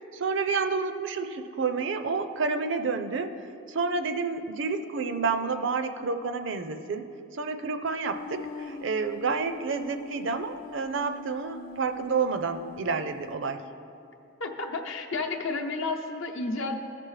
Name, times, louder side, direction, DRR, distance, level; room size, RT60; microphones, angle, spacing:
voice 1, 0.1-3.3 3.7-7.1 7.3-13.6, right 4 dB, 60° right, 8 dB, 0.5 m, -29 dB
sound 1, 8.1-13.4, left 3 dB, 45° left, 0.3 m, -44 dB
voice 2, 14.4-16.8, left 3 dB, 65° left, 2 dB, 0.8 m, -31 dB
15.0 x 6.0 x 3.2 m, 2.6 s
head